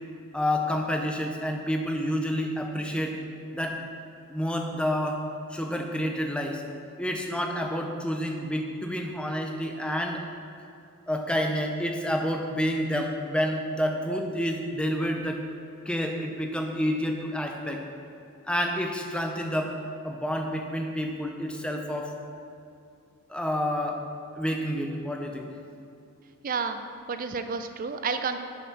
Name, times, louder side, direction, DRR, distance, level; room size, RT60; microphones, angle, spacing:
voice 1, 0.3-3.2 3.5-3.8 4.3-5.2 5.5-6.6 7.0-10.2 11.1-15.4 15.9-17.8 18.5-19.8 20.0-22.1 23.3-24.0 24.4-25.5, equal, 5° left, 2 dB, 0.6 m, -29 dB
voice 2, 26.4-26.8 27.1-28.4, right 5 dB, 40° right, 8 dB, 0.4 m, -30 dB
7.2 x 5.8 x 5.8 m, 2.6 s
head